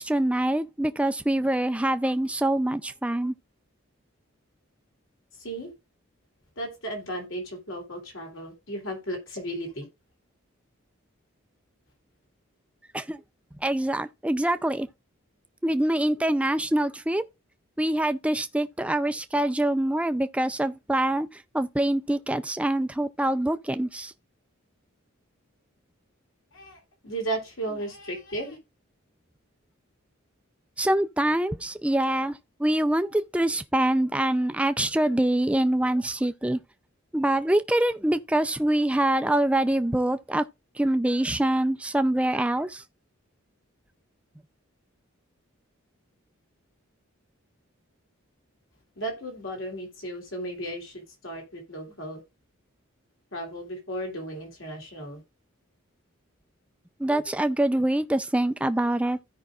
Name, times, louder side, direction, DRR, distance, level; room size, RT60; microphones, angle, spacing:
voice 1, 0.0-3.3 12.9-13.2 13.6-14.9 15.6-17.2 17.8-21.3 21.5-24.1 30.8-36.6 37.1-40.4 40.8-42.8 57.0-59.2, right 1 dB, 5° right, 0.4 m, -25 dB
voice 2, 5.4-5.7 6.6-9.8 26.5-28.6 49.0-52.2 53.3-55.2, right 1 dB, 65° left, 3.2 m, -35 dB
15.5 x 5.3 x 2.4 m
head